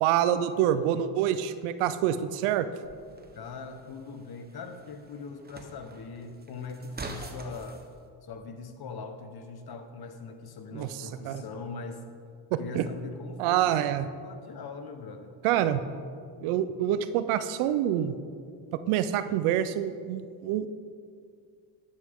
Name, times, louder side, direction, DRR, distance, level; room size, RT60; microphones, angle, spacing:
voice 1, 0.0-2.7 10.7-11.4 12.5-12.9 13.4-14.1 15.4-15.8 16.4-18.2 18.9-20.7, right 11 dB, 85° right, 12 dB, 0.7 m, -26 dB
sound 1, 2.8-7.8, right 3 dB, 20° right, 1.2 m, -45 dB
voice 2, 3.3-7.8 8.2-12.0 12.6-13.8 14.2-15.4, left 4 dB, 50° left, 7 dB, 1.3 m, -41 dB
12.0 x 9.4 x 3.7 m, 2.2 s
supercardioid pair, 75°, 49 cm